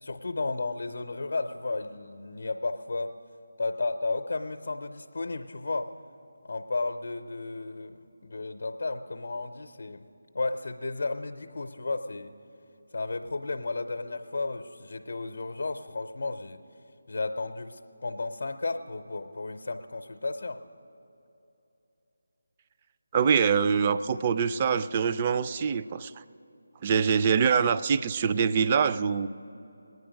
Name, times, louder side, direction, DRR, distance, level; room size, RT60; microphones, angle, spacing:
voice 1, 0.0-3.1 3.6-5.9 6.4-10.0 10.3-12.3 12.9-16.6 17.1-20.6, left 3 dB, 65° left, 7 dB, 0.6 m, -33 dB
voice 2, 23.1-26.1 26.8-29.3, right 6 dB, 25° right, 12 dB, 0.3 m, -24 dB
20.0 x 9.5 x 5.1 m, 2.9 s
figure-of-eight pair, 155°, 0 cm